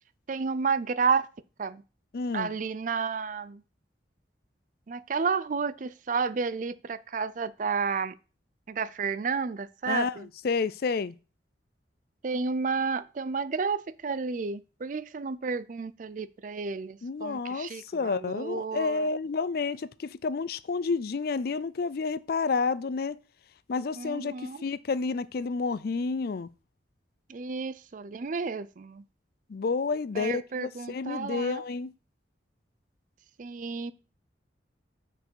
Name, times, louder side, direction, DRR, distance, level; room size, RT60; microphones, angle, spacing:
voice 1, 0.3-1.3 1.6-1.8 2.3-3.6 4.9-8.2 8.7-10.3 12.2-19.1 24.0-24.6 27.3-29.0 30.1-31.6 33.4-33.9, right 5 dB, 45° right, 0.4 m, -31 dB
voice 2, 2.1-2.5 9.9-10.1 10.4-11.1 17.0-23.2 23.7-26.5 29.5-31.9, left 4 dB, 55° left, 0.4 m, -30 dB
6.6 x 4.7 x 6.1 m
head